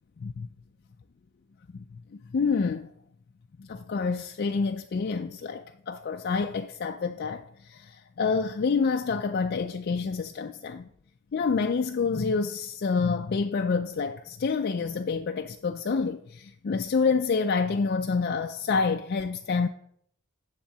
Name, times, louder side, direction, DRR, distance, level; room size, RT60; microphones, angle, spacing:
voice 1, 0.2-0.5 2.1-2.9 3.6-10.9 11.3-19.7, left 5 dB, 45° left, 0.4 m, -28 dB
10.0 x 3.7 x 7.3 m
head